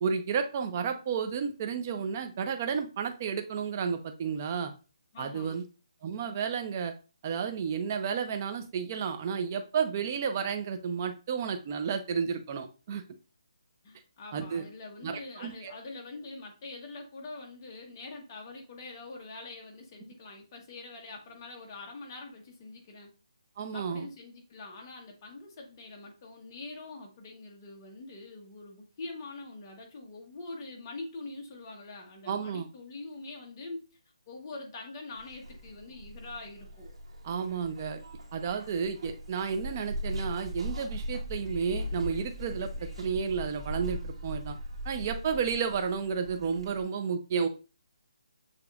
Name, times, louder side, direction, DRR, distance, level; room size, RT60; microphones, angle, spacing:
voice 1, 0.0-4.7 5.2-5.6 6.0-6.9 7.2-13.0 14.3-14.6 15.0-15.7 23.6-24.0 32.3-32.7 37.2-38.0 38.3-44.6 44.8-47.5, right 6 dB, 25° right, 6 dB, 0.5 m, -32 dB
voice 2, 5.1-5.6 13.8-23.1 23.7-34.0 34.3-36.9, left 3 dB, 25° left, 1 dB, 1.0 m, -44 dB
Zipper (clothing), 35.1-46.8, equal, 75° right, 1.9 m, -39 dB
6.8 x 2.9 x 2.4 m, 0.32 s
hypercardioid pair, 165°, 3 cm